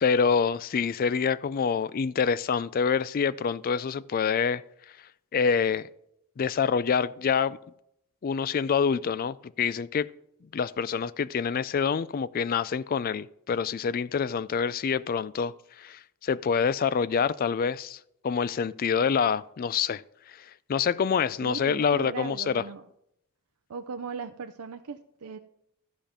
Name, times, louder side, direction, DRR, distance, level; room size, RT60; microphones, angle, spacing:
voice 1, 0.0-4.6 5.3-5.8 6.4-7.6 8.2-10.1 10.5-18.0 18.2-20.0 20.7-22.6, left 6 dB, 40° left, 0.3 m, -26 dB
voice 2, 21.4-22.9 23.7-25.4, right 5 dB, 90° right, 0.5 m, -38 dB
14.0 x 5.1 x 5.8 m
head